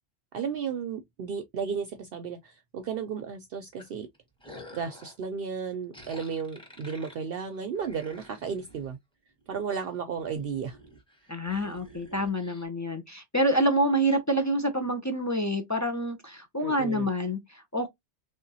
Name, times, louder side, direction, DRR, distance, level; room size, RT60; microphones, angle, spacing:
voice 1, 0.3-4.1 4.7-9.0 9.5-10.8 11.5-11.6 16.6-17.1, right 6 dB, 65° right, 0.7 m, -34 dB
sound 1, 3.8-5.2 5.9-9.0 9.4-9.8 10.2-12.6, left 1 dB, 5° left, 1.2 m, -50 dB
voice 2, 11.3-17.9, equal, 25° left, 0.4 m, -27 dB
3.4 x 2.8 x 2.6 m
omnidirectional pair, 1.2 m